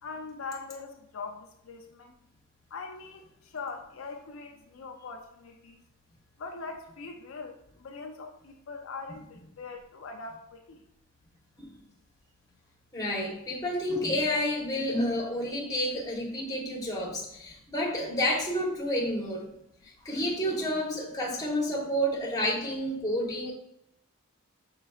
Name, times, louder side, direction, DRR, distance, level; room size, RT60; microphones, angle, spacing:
voice 1, 0.0-2.2 2.7-5.8 6.4-10.8, left 4 dB, 70° left, 3 dB, 0.5 m, -42 dB
voice 2, 12.9-19.4 19.8-23.5, equal, 20° left, -3 dB, 1.1 m, -30 dB
5.7 x 3.9 x 2.4 m, 0.78 s
head